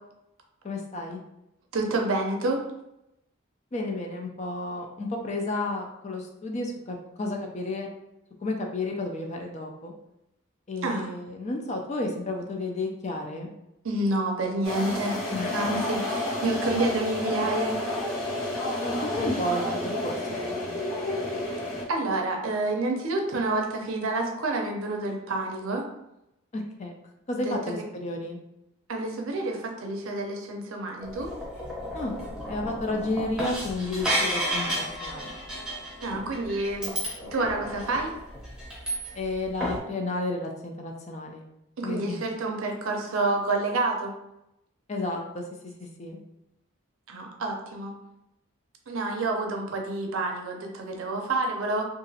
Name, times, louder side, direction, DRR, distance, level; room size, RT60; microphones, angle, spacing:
voice 1, 0.6-1.2 3.7-7.9 8.4-9.9 10.7-13.5 15.3-15.5 18.8-20.8 26.5-26.9 27.3-28.4 31.9-32.2 32.5-35.3 39.1-41.4 41.8-42.2 44.9-46.2, left 2 dB, 30° left, 2 dB, 0.3 m, -32 dB
voice 2, 1.7-2.6 10.8-11.1 13.8-15.2 15.5-17.8 21.9-25.8 27.5-27.6 28.9-31.3 36.0-36.9 37.3-38.1 41.8-44.1 47.1-47.9 48.9-51.8, right 2 dB, 70° right, 1 dB, 0.5 m, -28 dB
sound 1, 14.6-21.8, left 1 dB, 85° left, 0.9 m, -30 dB
sound 2, 31.0-39.3 39.6-39.8, equal, 5° right, 0.7 m, -32 dB
2.8 x 2.5 x 2.7 m, 0.86 s
head